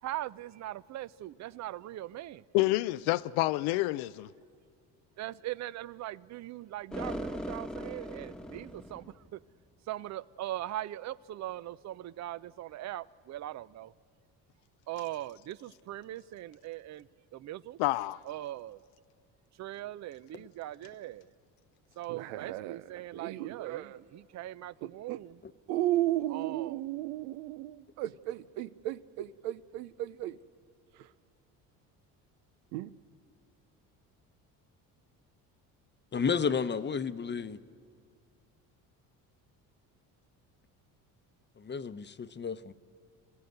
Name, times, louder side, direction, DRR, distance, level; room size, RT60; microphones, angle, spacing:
voice 1, 0.0-2.5 5.2-9.4 9.8-13.9 14.9-17.8 18.2-18.8 19.5-21.3 21.9-25.4 26.3-26.9, right 14 dB, 45° right, 0.5 m, -40 dB
voice 2, 2.5-4.3 17.8-18.2, left 18 dB, 80° left, 0.5 m, -28 dB
sound 1, 6.9-9.3, equal, ahead, 1.2 m, -39 dB
sound 2, 22.1-24.0 24.8-25.2 25.7-30.4 31.0-31.1 32.7-32.9, right 14 dB, 85° right, 0.6 m, -34 dB
voice 3, 36.1-37.6 41.6-42.7, left 6 dB, 30° left, 0.8 m, -32 dB
27.0 x 15.0 x 8.0 m
supercardioid pair, 80°, 39 cm